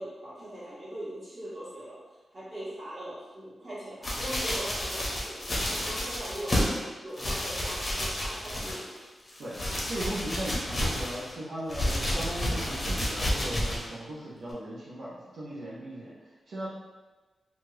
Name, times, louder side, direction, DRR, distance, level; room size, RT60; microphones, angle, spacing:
voice 1, 0.0-2.0 2.3-9.0, right 1 dB, 30° right, -9 dB, 1.3 m, -41 dB
sound 1, 4.0-6.8 7.1-9.0 9.3-11.3 11.7-13.9 14.5-14.6, left 1 dB, 30° left, 0.7 m, -30 dB
voice 2, 9.9-16.1 16.5-16.7, right 1 dB, 70° right, -8 dB, 0.6 m, -37 dB
2.8 x 2.4 x 3.1 m, 1.2 s
wide cardioid pair, 100°, 0 cm